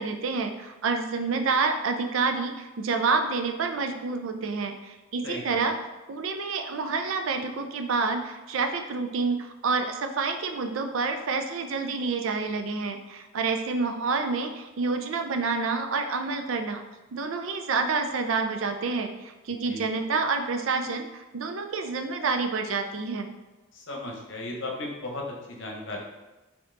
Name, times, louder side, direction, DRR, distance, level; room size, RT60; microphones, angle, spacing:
voice 1, 0.0-5.8 6.1-16.8 17.1-23.3, right 4 dB, 70° right, 6 dB, 0.4 m, -28 dB
voice 2, 23.7-26.0, left 2 dB, 60° left, 0 dB, 0.9 m, -35 dB
4.3 x 2.9 x 3.7 m, 1.1 s
head